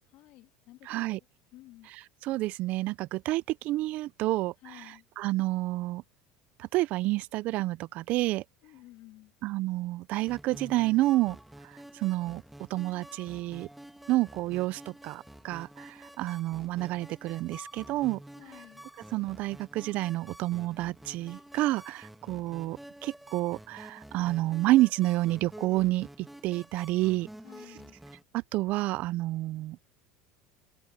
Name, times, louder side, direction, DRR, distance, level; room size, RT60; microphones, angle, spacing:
voice 1, 0.1-1.3 1.5-1.9 4.6-5.0 8.6-9.3 18.4-18.9 27.4-28.0, left 17 dB, 60° left, 2.6 m, -52 dB
voice 2, 0.9-1.2 1.9-6.0 6.6-8.4 9.4-11.4 11.6-12.4 12.7-13.7 14.1-18.2 19.1-27.3 28.3-29.8, right 17 dB, 55° right, 0.5 m, -29 dB
sound 1, 10.1-28.2, right 1 dB, 5° right, 1.8 m, -49 dB
open air
supercardioid pair, 115°, 3 cm